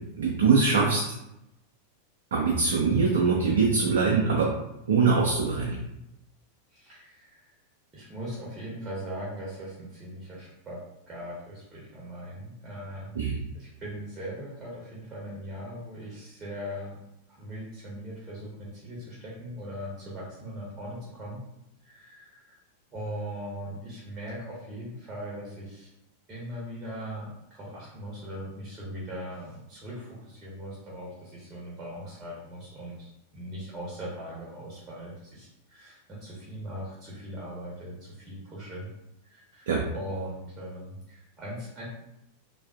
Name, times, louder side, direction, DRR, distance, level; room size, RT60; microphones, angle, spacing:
voice 1, 0.2-1.0 2.3-4.5 4.9-5.8 13.2-13.4 39.7-39.8, right 4 dB, 65° right, -2 dB, 0.5 m, -23 dB
voice 2, 6.7-7.5 7.9-10.8 11.1-13.2 13.5-17.0 17.3-21.4 21.8-22.6 22.9-25.9 26.3-38.9 39.2-41.9, equal, 20° right, -6 dB, 1.0 m, -40 dB
3.4 x 2.4 x 2.4 m, 0.86 s
figure-of-eight pair, 90°, 0 cm